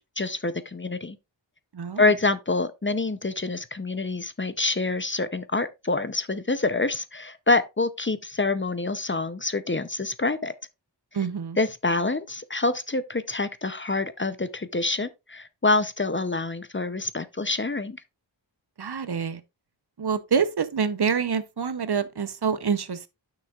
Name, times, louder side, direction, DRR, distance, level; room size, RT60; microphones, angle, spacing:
voice 1, 0.2-1.2 2.0-10.5 11.6-18.0, left 3 dB, 25° left, 0.6 m, -26 dB
voice 2, 11.1-11.6 18.8-19.4 20.0-23.1, right 6 dB, 60° right, 0.7 m, -26 dB
9.7 x 6.1 x 2.4 m
wide cardioid pair, 40°, 44 cm